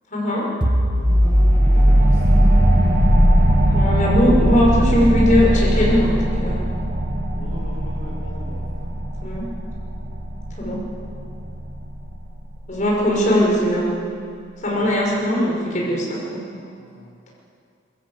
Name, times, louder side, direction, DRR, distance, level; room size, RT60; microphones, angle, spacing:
voice 1, 0.1-0.4 3.7-6.6 9.2-9.5 10.6-10.8 12.7-13.9 14.6-16.4, equal, 40° left, -4 dB, 6.0 m, -19 dB
sound 1, 0.6-12.0, equal, 25° right, 1.6 m, -20 dB
voice 2, 0.9-2.6 7.3-8.9 14.7-14.8 15.7-15.9 16.5-17.1, equal, 75° left, -3 dB, 2.4 m, -39 dB
sound 2, 1.1-12.2, equal, 60° right, 3.1 m, -23 dB
23.0 x 14.5 x 8.4 m, 2.3 s
head